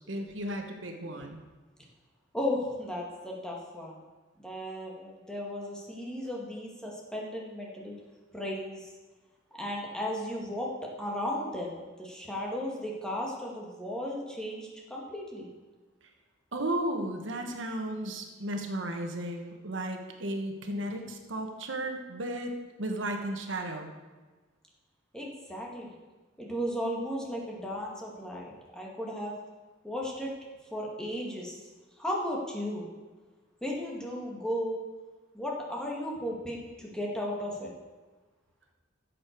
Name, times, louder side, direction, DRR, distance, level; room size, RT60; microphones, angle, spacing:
voice 1, 0.1-1.4 16.5-22.5 22.8-23.9, right 1 dB, 80° right, 4 dB, 1.3 m, -34 dB
voice 2, 2.3-4.0 4.4-7.9 8.3-8.9 9.6-15.5 25.1-25.9 26.4-29.3 29.8-30.3 30.7-31.6 32.0-32.9 33.6-34.8 35.3-37.7, left 1 dB, 5° left, -3 dB, 2.0 m, -35 dB
11.5 x 7.8 x 4.6 m, 1.3 s
head